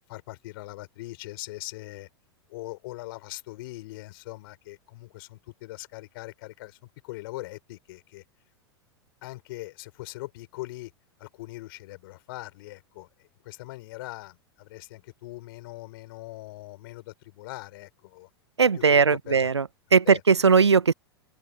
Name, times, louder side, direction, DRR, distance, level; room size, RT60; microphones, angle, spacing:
voice 1, 0.1-2.1 2.5-6.8 7.0-8.2 9.2-10.9 11.2-18.3 18.7-19.5 20.0-20.2, left 20 dB, 55° left, 4.5 m, -41 dB
voice 2, 18.6-20.9, right 5 dB, 90° right, 0.9 m, -19 dB
figure-of-eight pair, 95°, 14 cm